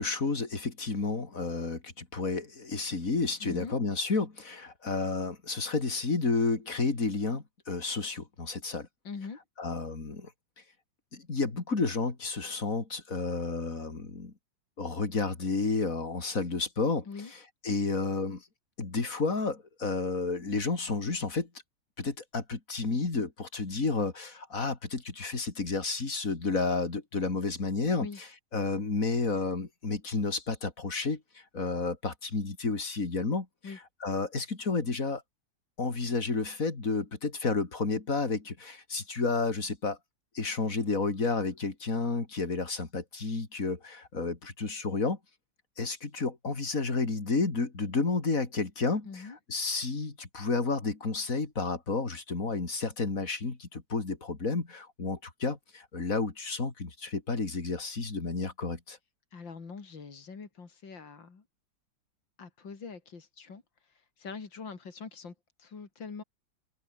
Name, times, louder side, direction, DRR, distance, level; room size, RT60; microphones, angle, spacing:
voice 1, 0.0-8.9 9.6-10.3 11.1-14.3 14.8-18.5 18.8-21.5 22.0-28.3 28.5-35.2 35.8-40.0 40.3-45.2 45.8-59.0, left 3 dB, 45° left, 3.7 m, -31 dB
voice 2, 3.4-3.7 9.0-9.4 17.1-17.3 28.0-28.2 33.6-33.8 49.1-49.4 59.3-61.4 62.4-66.2, left 5 dB, 80° left, 3.8 m, -43 dB
open air
omnidirectional pair, 2.0 m